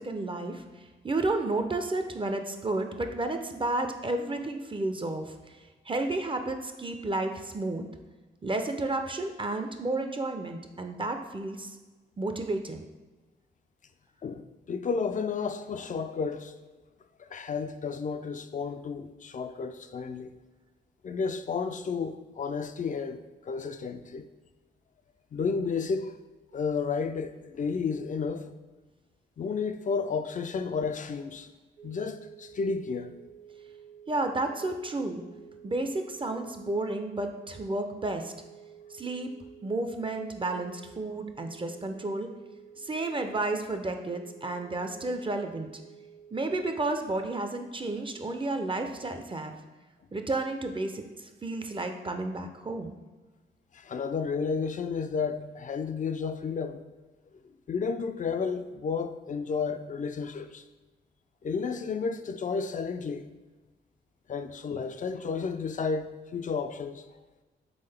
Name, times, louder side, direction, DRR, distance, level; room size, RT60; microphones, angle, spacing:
voice 1, 0.0-5.6 5.9-7.8 8.4-11.8 12.2-12.8 34.1-35.2 35.6-38.3 38.9-39.3 39.6-42.3 42.8-45.7 46.3-49.5 50.1-53.0, right 2 dB, 25° right, 0.5 m, -32 dB
voice 2, 14.2-16.5 17.2-20.3 21.0-24.3 25.3-26.1 26.5-28.5 29.4-31.5 31.8-33.1 53.7-56.8 57.7-60.6 61.4-63.3 64.3-67.0, left 5 dB, 40° left, 0.4 m, -32 dB
sound 1, 31.8-46.8, right 8 dB, 60° right, 1.1 m, -51 dB
3.8 x 3.6 x 3.4 m
supercardioid pair, 45°, 20 cm